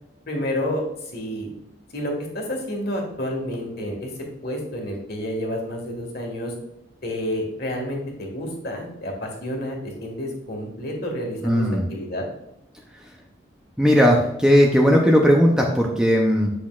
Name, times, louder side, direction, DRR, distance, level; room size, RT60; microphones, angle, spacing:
voice 1, 0.3-0.8 1.1-1.5 1.9-4.1 4.4-6.5 7.0-12.3, equal, 50° left, 1 dB, 1.7 m, -29 dB
voice 2, 11.4-11.9 12.9-13.1 13.8-16.5, equal, 5° right, -1 dB, 0.6 m, -17 dB
7.9 x 6.2 x 2.4 m, 0.82 s
head